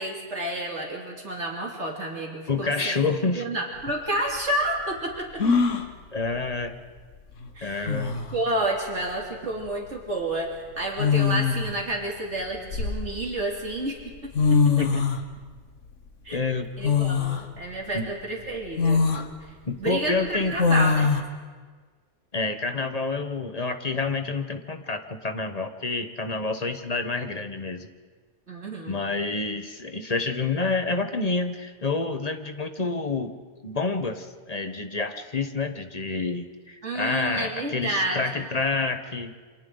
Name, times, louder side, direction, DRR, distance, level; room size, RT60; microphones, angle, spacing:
voice 1, 0.0-3.0 3.3-5.4 7.5-8.0 8.3-14.3 16.2-16.4 16.8-19.0 19.5-21.1 28.5-29.0 36.8-38.5, right 1 dB, 70° right, -2 dB, 3.2 m, -30 dB
voice 2, 2.5-3.4 6.1-6.7 7.6-8.2 14.8-15.1 16.3-16.7 17.9-18.1 19.7-20.6 22.3-27.9 28.9-33.3 33.6-39.3, left 3 dB, 35° left, 7 dB, 1.1 m, -28 dB
sound 1, 3.8-3.9 5.4-5.9 7.4-7.5 7.9-8.4 9.7-9.9 11.0-11.7 12.4-13.4 14.1-14.2 14.3-15.2 16.8-17.4 18.0-18.1 18.8-19.3 20.6-21.2, left 5 dB, 85° left, 1.6 m, -22 dB
29.0 x 25.5 x 3.9 m, 1.5 s
omnidirectional pair, 1.2 m